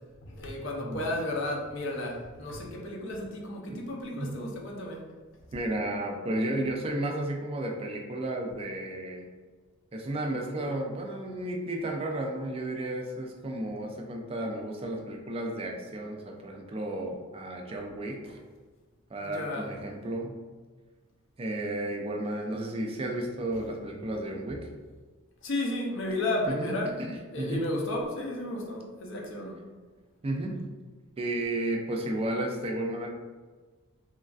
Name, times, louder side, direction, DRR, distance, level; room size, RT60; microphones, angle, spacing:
voice 1, 0.2-5.1 18.2-18.3 19.2-19.7 25.4-27.0 27.3-29.6, left 1 dB, 60° left, -1 dB, 0.5 m, -33 dB
voice 2, 0.8-1.2 4.2-4.4 5.5-9.3 9.9-18.4 19.1-20.3 21.4-24.7 26.5-27.6 30.2-30.5 31.2-33.1, right 1 dB, 25° right, 1 dB, 0.3 m, -33 dB
3.1 x 2.4 x 2.3 m, 1.4 s
head